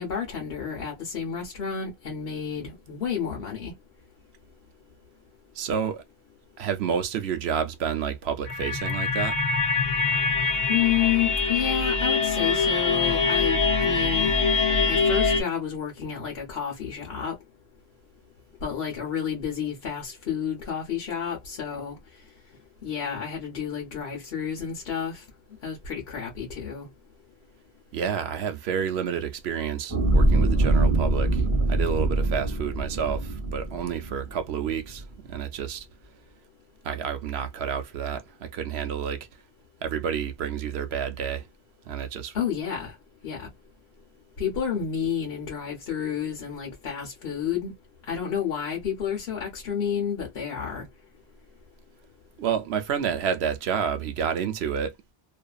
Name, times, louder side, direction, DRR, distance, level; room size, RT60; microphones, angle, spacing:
voice 1, 0.0-3.7 10.7-14.4 14.9-17.4 18.6-22.0 22.8-25.2 25.6-26.9 42.3-43.0 43.2-43.5 44.4-47.7 48.1-50.9, left 8 dB, 65° left, 1.0 m, -30 dB
voice 2, 5.5-6.0 6.6-9.4 27.9-31.4 31.7-35.9 36.8-39.3 39.8-41.5 41.9-42.3 52.4-54.9, right 7 dB, 70° right, 0.8 m, -29 dB
sound 1, 8.5-15.4, left 4 dB, 45° left, 0.6 m, -24 dB
sound 2, 29.9-34.4 34.9-35.0, right 2 dB, 15° right, 1.2 m, -23 dB
2.6 x 2.4 x 2.2 m
omnidirectional pair, 1.1 m